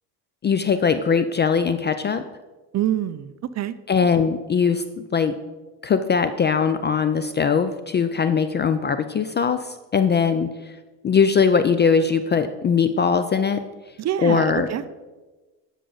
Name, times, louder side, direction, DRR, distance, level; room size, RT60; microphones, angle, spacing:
voice 1, 0.4-2.2 3.9-5.3 5.8-10.5 11.0-13.6 14.2-14.7, left 6 dB, 25° left, 10 dB, 0.3 m, -20 dB
voice 2, 2.7-3.7 14.0-14.9, right 11 dB, 35° right, 14 dB, 0.5 m, -26 dB
12.5 x 6.3 x 4.0 m, 1.2 s
supercardioid pair, 95°, 47 cm